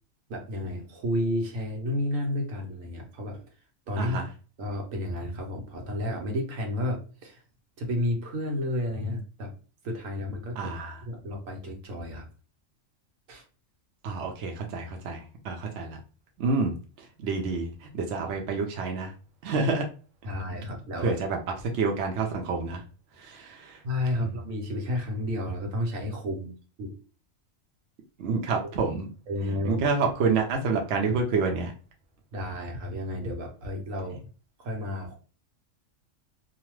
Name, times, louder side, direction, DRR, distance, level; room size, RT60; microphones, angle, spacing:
voice 1, 0.3-3.4 3.9-4.2 4.6-7.4 7.8-9.5 9.8-10.7 11.1-12.2 13.3-13.4 20.2-21.1 23.8-26.5 26.8-26.9 29.3-29.9 32.3-34.2 34.6-35.2, left 1 dB, 80° right, 1 dB, 1.2 m, -31 dB
voice 2, 4.0-4.3 10.5-11.0 14.0-16.0 16.4-19.1 19.4-19.9 21.0-22.8 23.1-23.8 24.2-24.4 28.2-29.1 29.4-31.7 34.1-34.2, right 4 dB, 65° right, 2 dB, 0.9 m, -28 dB
2.8 x 2.1 x 3.0 m, 0.36 s
omnidirectional pair, 1.3 m